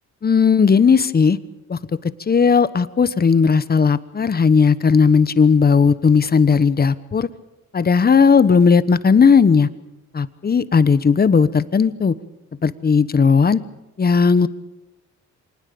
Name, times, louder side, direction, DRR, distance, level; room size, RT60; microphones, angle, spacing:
voice 1, 0.2-1.4 1.7-7.3 7.7-9.7 10.1-12.2 12.6-13.6 14.0-14.5, left 5 dB, 30° left, 15 dB, 1.1 m, -16 dB
25.5 x 19.5 x 7.0 m, 0.95 s
cardioid pair, 90°, 30 cm